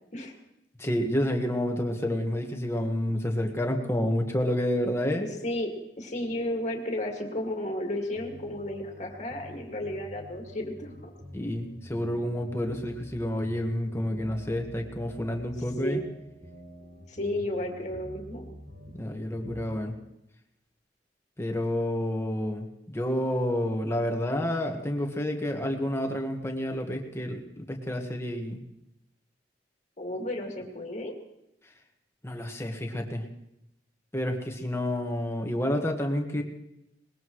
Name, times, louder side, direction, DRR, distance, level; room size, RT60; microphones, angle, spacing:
voice 1, 0.8-5.2 11.3-16.0 19.0-19.9 21.4-28.6 32.2-33.2 34.1-36.4, left 1 dB, 15° left, 3 dB, 1.6 m, -29 dB
voice 2, 6.0-11.1 15.8-16.0 17.1-18.5 30.0-31.1, left 1 dB, 40° left, 2 dB, 2.2 m, -33 dB
sound 1, 8.1-19.7, equal, 85° right, 5.1 m, -47 dB
21.5 x 20.0 x 3.2 m, 0.84 s
head